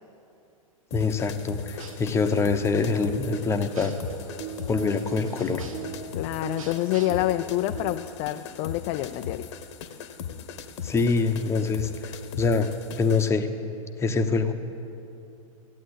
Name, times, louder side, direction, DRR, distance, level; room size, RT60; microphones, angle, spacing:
sound 1, 0.9-13.3, left 7 dB, 55° left, 1.0 m, -39 dB
voice 1, 0.9-3.9 4.7-5.6 10.8-12.7 13.0-13.5 14.0-14.5, left 4 dB, 15° left, 7 dB, 0.9 m, -25 dB
sound 2, 1.7-7.9, right 7 dB, 70° right, 1.1 m, -40 dB
voice 2, 6.1-9.5, left 15 dB, 35° left, 8 dB, 0.4 m, -27 dB
14.5 x 9.3 x 8.1 m, 2.7 s
figure-of-eight pair, 100°, 18 cm